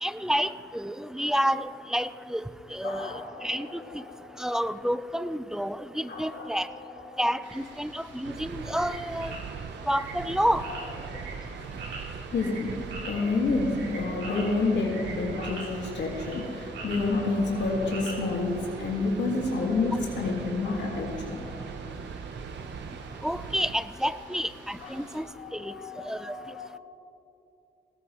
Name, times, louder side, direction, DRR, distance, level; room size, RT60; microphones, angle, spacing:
voice 1, 0.0-2.4 2.7-3.1 3.4-4.0 4.4-6.7 7.2-9.3 9.9-10.7 23.2-25.3 25.5-25.7 26.0-26.4, equal, 5° right, 13 dB, 0.6 m, -29 dB
voice 2, 2.8-4.4 6.1-7.2 10.4-10.8 11.1-11.2 12.3-21.6 24.8-26.8, left 3 dB, 80° left, -1 dB, 1.9 m, -30 dB
sound 1, 7.4-25.2, right 2 dB, 90° right, 3.0 m, -45 dB
sound 2, 8.2-23.8, right 6 dB, 70° right, 0.7 m, -40 dB
19.5 x 17.5 x 3.1 m, 2.7 s
cardioid pair, 60°, 18 cm